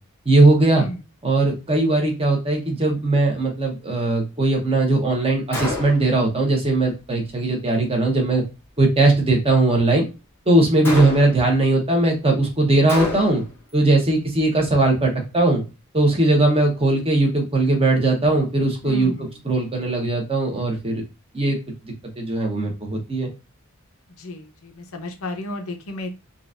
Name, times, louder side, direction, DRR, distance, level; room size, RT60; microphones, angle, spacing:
voice 1, 0.2-0.8 1.2-8.4 8.8-10.1 10.5-13.4 13.7-15.6 15.9-19.1 19.4-21.0 21.3-21.6 21.8-23.3, right 2 dB, 25° right, 1 dB, 1.1 m, -19 dB
Gunshot gunfire, 5.5-6.2 10.8-11.5 12.9-13.6, left 2 dB, 10° left, 0.9 m, -28 dB
voice 2, 18.8-19.4 24.2-26.1, left 1 dB, 70° left, 4 dB, 0.7 m, -33 dB
3.9 x 2.5 x 2.5 m, 0.28 s
head